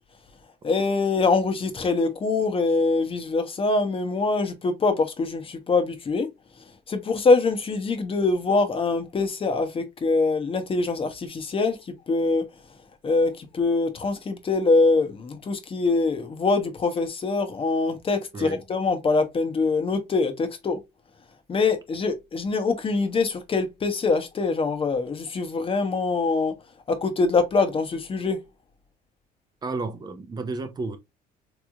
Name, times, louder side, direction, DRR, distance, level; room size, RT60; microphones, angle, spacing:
voice 1, 0.6-6.3 6.9-12.4 13.0-20.8 21.5-26.5 26.9-28.5, left 3 dB, 35° left, 0.9 m, -24 dB
voice 2, 29.6-31.0, right 3 dB, 25° right, 0.6 m, -32 dB
3.3 x 3.1 x 2.4 m
cardioid pair, 110°, 17 cm